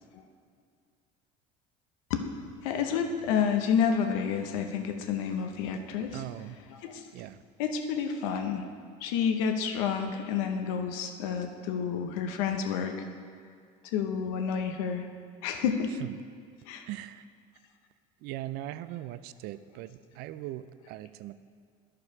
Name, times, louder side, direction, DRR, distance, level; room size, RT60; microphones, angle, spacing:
voice 1, 2.6-7.1 7.6-8.7 9.0-13.0 13.9-15.0 15.4-16.0 16.7-16.9, left 7 dB, 90° left, 6 dB, 0.8 m, -30 dB
voice 2, 6.1-6.6 7.1-7.4 16.0-16.1 16.9-17.2 18.2-21.3, right 14 dB, 70° right, 14 dB, 0.4 m, -39 dB
11.0 x 4.8 x 4.8 m, 2.2 s
supercardioid pair, 105°, 17 cm